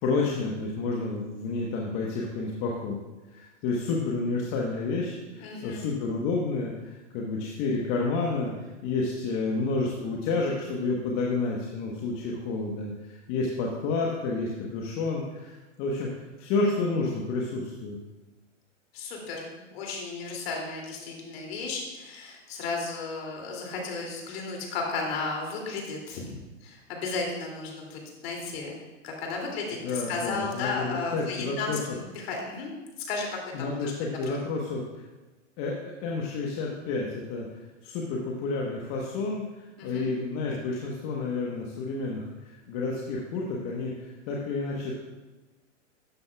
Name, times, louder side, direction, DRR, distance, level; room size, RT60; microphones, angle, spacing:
voice 1, 0.0-3.0 3.3-18.0 29.8-31.8 33.5-35.0 35.6-37.5 37.8-44.9, left 3 dB, 35° left, -2 dB, 1.2 m, -30 dB
voice 2, 5.4-5.8 18.9-28.8 29.0-32.7 33.0-33.9 34.3-34.4 39.8-40.1, left 4 dB, 50° left, 0 dB, 2.8 m, -34 dB
12.5 x 9.4 x 2.4 m, 1.1 s
hypercardioid pair, 115°, 38 cm